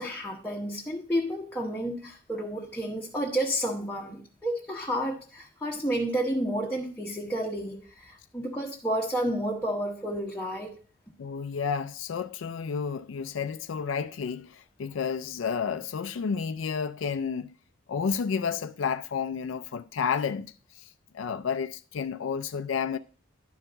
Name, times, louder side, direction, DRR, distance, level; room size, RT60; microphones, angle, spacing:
voice 1, 0.0-10.8, equal, 10° left, 0.9 m, -31 dB
voice 2, 11.2-17.5 17.9-20.9 21.1-23.0, left 6 dB, 90° left, 0.4 m, -31 dB
11.0 x 4.5 x 5.2 m
head